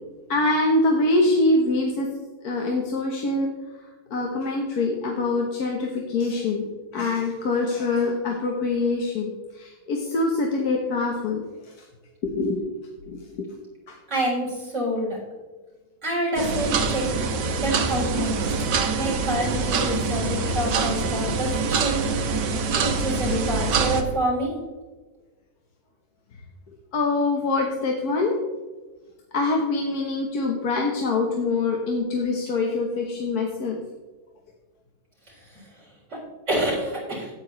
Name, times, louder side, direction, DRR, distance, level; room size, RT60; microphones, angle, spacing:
voice 1, 0.3-2.1 2.4-3.5 4.1-6.7 6.9-11.4 12.2-12.6 13.1-13.5 13.9-14.0 23.1-23.2 26.9-28.4 29.3-33.8, left 2 dB, 65° left, 0 dB, 1.6 m, -24 dB
voice 2, 14.1-15.2 16.0-17.0 17.6-18.3 18.9-22.0 22.8-24.5 35.5-35.6 36.1-36.2 36.5-37.3, right 1 dB, 40° right, -5 dB, 4.3 m, -27 dB
sound 1, 16.4-24.0, right 4 dB, 85° right, 1.6 m, -25 dB
13.0 x 9.6 x 3.2 m, 1.2 s
omnidirectional pair, 1.8 m